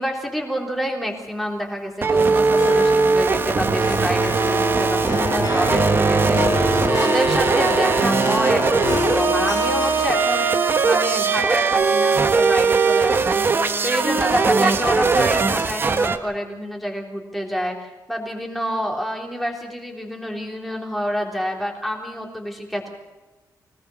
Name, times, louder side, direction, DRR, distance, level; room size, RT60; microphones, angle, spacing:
voice 1, 0.0-22.9, equal, ahead, 0 dB, 3.7 m, -28 dB
sound 1, 2.0-16.2, right 4 dB, 35° right, 1.2 m, -19 dB
Harp, 2.6-13.1, left 6 dB, 70° left, 2.1 m, -29 dB
25.0 x 19.0 x 6.2 m, 1.2 s
wide cardioid pair, 165°, 7 cm